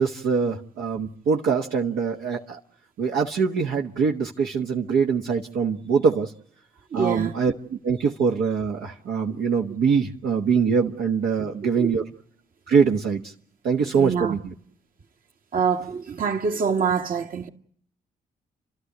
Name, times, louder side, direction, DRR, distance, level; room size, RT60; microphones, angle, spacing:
voice 1, 0.0-2.6 3.0-6.3 6.9-7.5 7.8-12.0 12.7-13.3 13.6-14.4, right 6 dB, 75° right, 1.3 m, -23 dB
voice 2, 6.9-7.3 11.8-12.0 13.9-14.4 15.5-17.5, right 6 dB, 60° right, 1.8 m, -25 dB
30.0 x 13.0 x 8.0 m
supercardioid pair, 50°, 17 cm